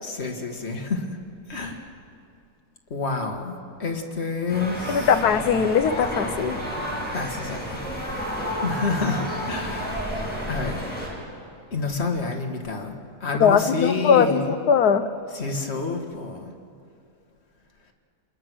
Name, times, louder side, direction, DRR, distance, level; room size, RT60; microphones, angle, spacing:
voice 1, 0.0-1.2 1.5-1.9 2.9-3.5 3.8-5.1 7.1-8.0 8.6-10.2 10.5-10.9 11.7-12.9 13.2-14.5 15.3-16.5, left 4 dB, 45° left, 3 dB, 2.1 m, -28 dB
sound 1, 4.5-11.1, equal, 5° left, 6.5 m, -31 dB
voice 2, 4.9-6.6 13.4-14.4 14.7-15.1, left 7 dB, 85° left, 10 dB, 1.5 m, -20 dB
29.0 x 20.5 x 6.3 m, 2.5 s
omnidirectional pair, 1.6 m